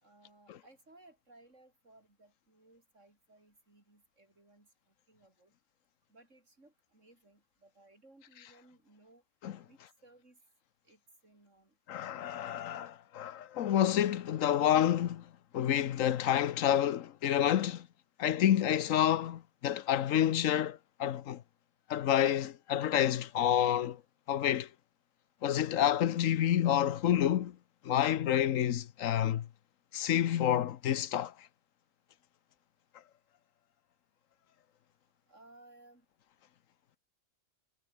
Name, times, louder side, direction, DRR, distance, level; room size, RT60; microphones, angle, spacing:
voice 1, 0.0-5.5 6.1-9.2 9.6-10.4 10.8-11.8 23.8-23.9 35.3-36.1, right 2 dB, 70° right, 6.0 m, -61 dB
voice 2, 11.9-15.2 15.5-17.9 18.2-21.4 21.9-24.0 24.3-24.7 25.4-27.6 27.8-29.5 29.9-31.3, left 10 dB, 85° left, 1.2 m, -29 dB
omnidirectional pair, 1.3 m